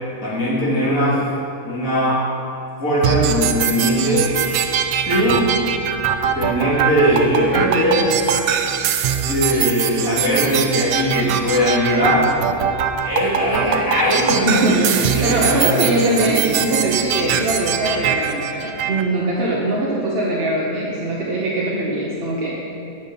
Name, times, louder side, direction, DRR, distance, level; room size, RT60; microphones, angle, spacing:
voice 1, 0.2-1.2 1.6-2.2 2.8-4.3 5.0-5.4 6.3-8.1 9.2-12.3 13.0-16.5, equal, 65° left, -7 dB, 2.7 m, -20 dB
sound 1, 3.0-19.0, right 8 dB, 80° right, 1.0 m, -22 dB
voice 2, 14.3-22.6, right 2 dB, 45° right, -4 dB, 1.0 m, -21 dB
8.3 x 7.3 x 5.1 m, 2.8 s
omnidirectional pair, 1.5 m